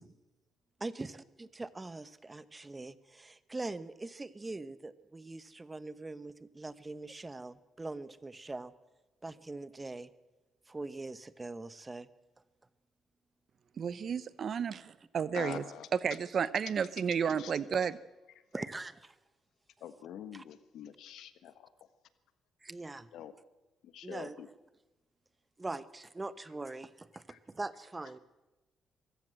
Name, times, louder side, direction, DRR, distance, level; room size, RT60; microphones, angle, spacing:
voice 1, 0.8-8.7 9.2-10.1 10.7-12.1 18.5-19.2 20.3-20.4 22.6-23.1 24.0-24.4 25.6-28.2, right 2 dB, 20° right, 15 dB, 1.0 m, -42 dB
voice 2, 13.8-15.6 16.0-18.0, right 7 dB, 55° right, 17 dB, 0.8 m, -32 dB
voice 3, 15.3-15.9 17.4-17.9 19.8-21.7 23.1-23.3 23.8-24.5 27.3-27.4, left 10 dB, 80° left, 12 dB, 1.3 m, -45 dB
23.5 x 15.5 x 7.7 m, 1.1 s
cardioid pair, 90°, 0 cm